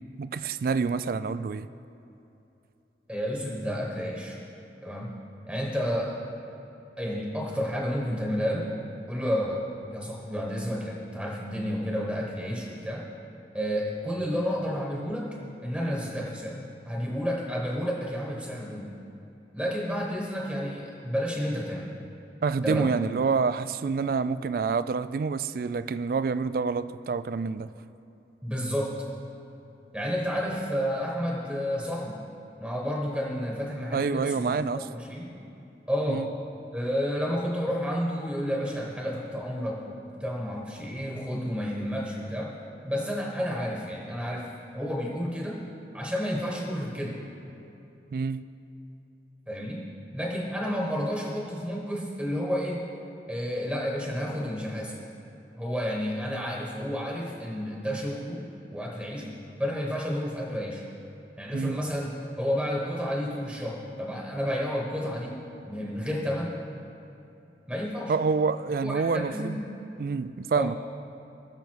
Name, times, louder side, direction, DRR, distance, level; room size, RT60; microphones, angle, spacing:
voice 1, 0.2-1.7 22.4-27.7 33.9-34.8 36.1-36.3 48.1-48.4 61.5-61.8 68.1-69.6 70.0-70.8, right 5 dB, 55° right, 0.3 m, -27 dB
voice 2, 3.1-4.4 4.8-6.2 7.0-8.7 9.1-13.1 13.5-18.9 19.5-21.9 22.6-22.9 28.4-29.0 29.9-32.2 32.6-35.3 35.9-36.3 36.7-42.5 42.8-44.5 44.7-45.7 45.9-47.2 49.5-49.9 50.1-52.8 53.3-55.0 55.5-60.9 61.4-66.6 67.7-68.1 68.8-69.7 70.5-70.7, equal, 5° right, 1.1 m, -31 dB
19.5 x 6.9 x 4.6 m
head